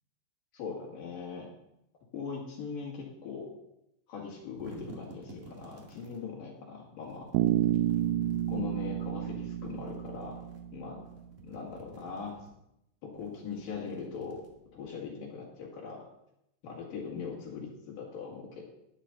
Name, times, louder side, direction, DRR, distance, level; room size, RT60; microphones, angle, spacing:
voice 1, 0.5-1.5 2.1-3.5 4.1-7.3 8.5-10.4 10.7-11.0 11.4-12.4 13.0-14.4 14.7-16.0 16.6-18.6, left 5 dB, 80° left, -4 dB, 4.0 m, -40 dB
sound 1, 4.3-6.2 7.0-8.6 9.6-10.6 11.0-12.5 13.1-14.9, right 1 dB, 30° right, 1.8 m, -51 dB
Bass guitar, 7.3-11.2, right 12 dB, 90° right, 2.4 m, -30 dB
13.0 x 10.5 x 4.3 m, 0.82 s
omnidirectional pair, 3.8 m